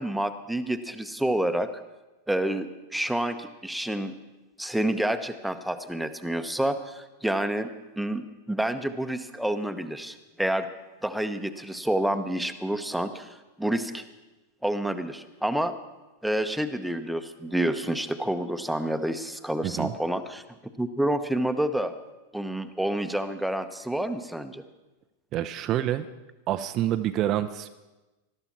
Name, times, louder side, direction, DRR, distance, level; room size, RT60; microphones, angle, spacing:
voice 1, 0.0-1.7 2.3-4.1 4.6-7.7 8.0-10.7 11.0-14.0 14.6-15.7 16.2-20.4 20.8-21.9 22.3-24.6, right 1 dB, ahead, 9 dB, 1.0 m, -28 dB
voice 2, 19.6-19.9 25.3-26.1 26.5-27.7, right 12 dB, 35° right, 10 dB, 0.6 m, -27 dB
20.5 x 13.0 x 4.4 m, 1.1 s
figure-of-eight pair, 90°, 0 cm